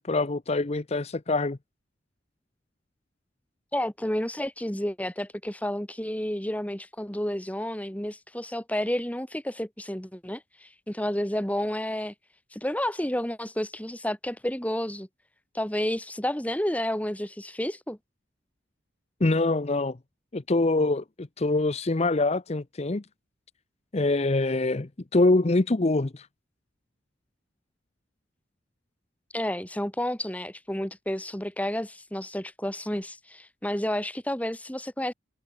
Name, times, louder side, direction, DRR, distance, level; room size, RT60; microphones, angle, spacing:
voice 1, 0.0-1.6 19.2-20.0 20.3-23.0 23.9-26.3, left 2 dB, 35° left, 0.7 m, -24 dB
voice 2, 3.7-12.1 12.5-15.1 15.5-18.0 29.3-35.1, left 1 dB, 10° left, 2.0 m, -31 dB
head